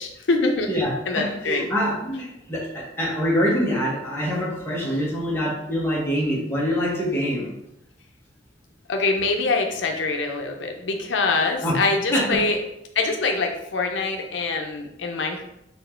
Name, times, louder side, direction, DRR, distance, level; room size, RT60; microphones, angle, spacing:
voice 1, 0.0-0.7 1.1-1.6 8.9-12.6 13.0-15.4, left 3 dB, 85° left, 3 dB, 0.6 m, -24 dB
voice 2, 0.7-7.5 11.6-11.8 12.1-12.4, equal, 15° left, -5 dB, 1.2 m, -25 dB
4.3 x 2.7 x 4.4 m, 0.84 s
head